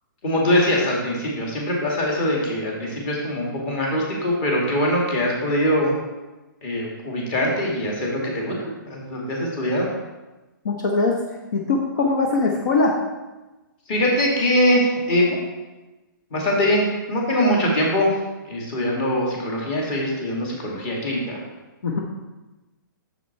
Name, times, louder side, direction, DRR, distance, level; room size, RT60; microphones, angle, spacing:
voice 1, 0.2-5.9 6.6-9.9 13.9-15.4 16.3-18.1 18.5-21.4, equal, 25° left, -2 dB, 1.8 m, -22 dB
voice 2, 10.6-11.1 11.5-13.0 21.8-22.0, left 3 dB, 55° left, 0 dB, 1.0 m, -21 dB
6.7 x 6.2 x 4.4 m, 1.1 s
hypercardioid pair, 165°, 11 cm